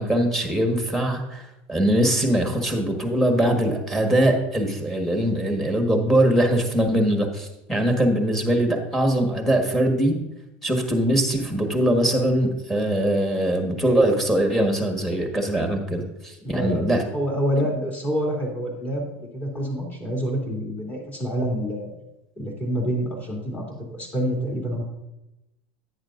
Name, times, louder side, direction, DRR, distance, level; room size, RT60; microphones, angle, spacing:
voice 1, 0.0-10.2 10.6-17.0, right 1 dB, 5° left, 3 dB, 1.7 m, -22 dB
voice 2, 16.4-16.8 17.1-21.9 22.4-23.6 23.9-24.8, equal, 25° left, -2 dB, 3.0 m, -27 dB
10.5 x 8.8 x 2.6 m, 0.92 s
hypercardioid pair, 105°, 7 cm